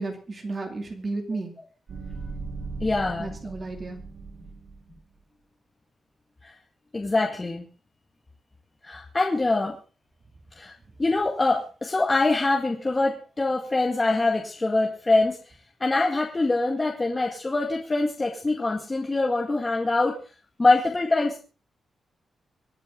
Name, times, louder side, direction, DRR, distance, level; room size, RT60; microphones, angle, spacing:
voice 1, 0.0-1.5 3.2-4.0, right 3 dB, 30° right, 4 dB, 2.5 m, -33 dB
sound 1, 1.9-5.0, right 4 dB, 55° right, 1.8 m, -38 dB
voice 2, 2.8-3.4 6.4-6.5 6.9-7.6 8.8-9.8 10.6-10.7 11.0-15.4 15.8-20.2 20.6-21.4, left 2 dB, 20° left, 0 dB, 2.0 m, -24 dB
25.5 x 9.5 x 3.8 m, 0.36 s
wide cardioid pair, 155°, 0 cm